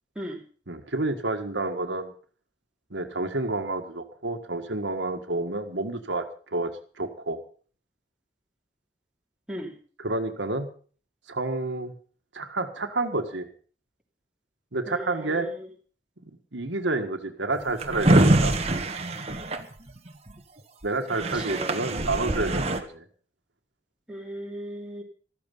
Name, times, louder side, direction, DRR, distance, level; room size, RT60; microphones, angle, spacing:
voice 1, 0.7-2.1 2.9-6.3 6.5-6.7 7.0-7.4 10.0-10.7 11.3-11.9 12.3-13.5 14.7-15.5 16.2-18.6 20.8-23.1, right 2 dB, 75° right, 5 dB, 1.8 m, -29 dB
voice 2, 14.9-15.7 21.3-21.8 24.1-25.0, equal, 5° right, -1 dB, 3.1 m, -37 dB
Drawer open or close, 17.5-20.3 20.8-20.9 21.1-22.8, right 1 dB, 35° right, 1.5 m, -24 dB
14.0 x 14.0 x 5.5 m, 0.41 s
head